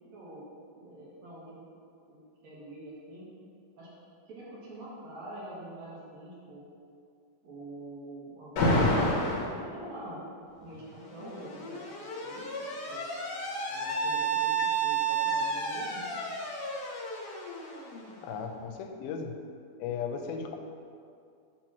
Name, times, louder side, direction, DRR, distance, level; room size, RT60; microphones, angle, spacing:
voice 1, 0.1-0.5 0.8-1.6 2.1-3.3 3.8-3.9 4.3-6.7 7.4-10.2 10.6-12.5 12.9-13.1 13.7-16.0, right 1 dB, 65° right, -7 dB, 2.0 m, -45 dB
Alarm, 8.6-9.5 10.7-18.4, right 2 dB, 70° left, 2.1 m, -30 dB
voice 2, 18.2-19.3 19.8-20.6, left 6 dB, 85° left, 5 dB, 2.4 m, -36 dB
7.2 x 3.0 x 5.9 m, 2.4 s
omnidirectional pair, 4.3 m